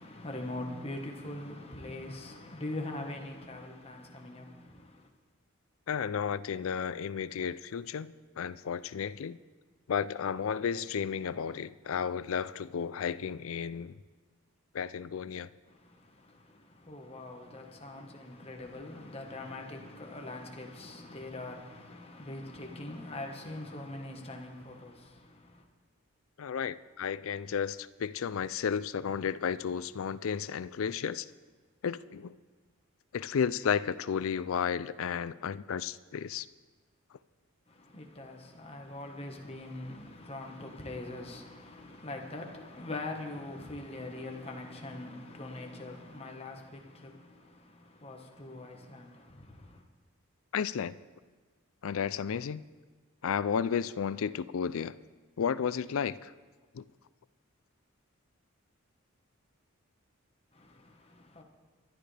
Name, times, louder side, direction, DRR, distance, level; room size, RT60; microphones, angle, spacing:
voice 1, 0.0-5.1 15.7-25.6 37.7-49.8 60.5-61.4, left 2 dB, 25° left, 1.3 m, -43 dB
voice 2, 5.9-9.4 9.9-14.0 14.7-15.5 26.4-31.3 31.8-32.3 33.1-36.5 50.5-50.9 51.8-52.6 53.2-55.0 55.4-56.3 56.7-56.8, left 7 dB, 70° left, 0.4 m, -33 dB
24.0 x 11.5 x 3.4 m
head